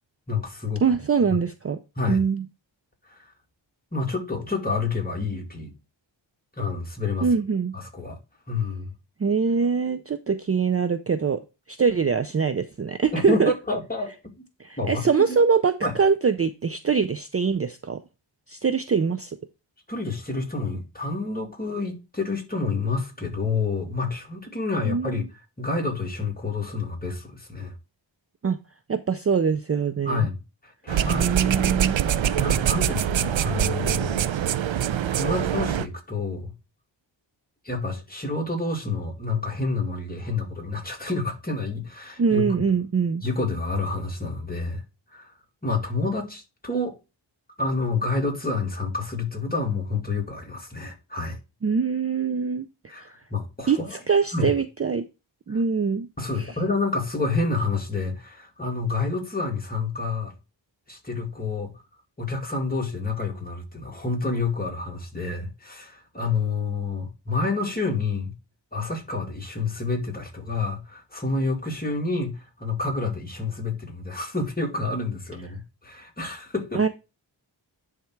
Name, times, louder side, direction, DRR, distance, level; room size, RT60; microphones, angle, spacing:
voice 1, 0.3-0.8 1.3-1.4 2.0-2.2 3.1-3.2 3.9-5.7 6.6-7.3 7.7-8.2 8.5-8.9 13.1-13.4 13.7-14.1 14.8-15.4 15.8-15.9 19.9-25.2 25.6-27.7 30.1-30.3 30.6-31.3 32.3-34.2 35.1-36.5 37.6-42.5 43.2-44.8 45.1-45.3 45.6-47.0 47.6-51.4 52.9-53.9 54.3-54.5 55.5-55.6 56.2-60.3 60.9-61.7 62.2-68.3 68.7-76.8, left 3 dB, 20° left, 2.1 m, -28 dB
voice 2, 0.8-1.8 2.1-2.4 7.2-7.7 9.2-11.4 11.7-13.5 14.6-18.0 18.5-19.4 24.8-25.2 28.4-28.6 28.9-30.3 31.1-32.0 42.2-43.2 51.6-52.7 52.9-53.1 53.7-55.0 55.5-56.1 56.4-56.5 76.7-76.9, right 5 dB, 35° right, 0.5 m, -23 dB
sound 1, 30.9-35.9, right 10 dB, 80° right, 0.6 m, -24 dB
10.5 x 3.6 x 4.5 m
wide cardioid pair, 105°, 45 cm